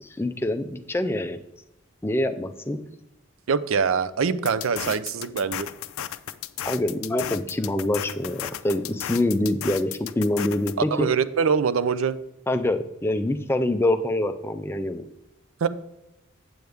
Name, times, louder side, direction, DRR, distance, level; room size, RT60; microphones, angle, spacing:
voice 1, 0.0-1.4 2.0-2.8 6.6-11.1 12.5-15.0, left 1 dB, 10° left, 8 dB, 0.4 m, -25 dB
voice 2, 3.5-5.7 10.9-12.2 15.6-15.7, right 6 dB, 80° right, 14 dB, 0.4 m, -23 dB
sound 1, 4.4-10.7, left 11 dB, 85° left, 0.4 m, -34 dB
7.9 x 7.8 x 3.5 m, 0.88 s
head